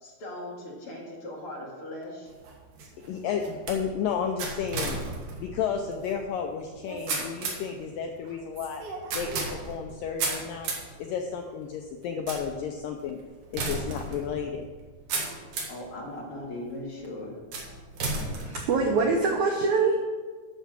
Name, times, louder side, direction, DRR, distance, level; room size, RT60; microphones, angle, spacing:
voice 1, 0.0-2.3 15.7-17.4, left 1 dB, 45° left, -3 dB, 2.1 m, -39 dB
sound 1, 2.3-15.9 16.4-16.9 17.5-19.3, right 3 dB, 60° right, 2.8 m, -35 dB
voice 2, 3.1-5.0 5.4-8.8 9.1-10.7 11.0-13.2 13.5-14.6, left 7 dB, 90° left, 4 dB, 1.9 m, -32 dB
voice 3, 18.4-20.0, right 4 dB, 80° right, 0 dB, 1.7 m, -24 dB
11.0 x 6.8 x 6.0 m, 1.5 s
omnidirectional pair, 4.8 m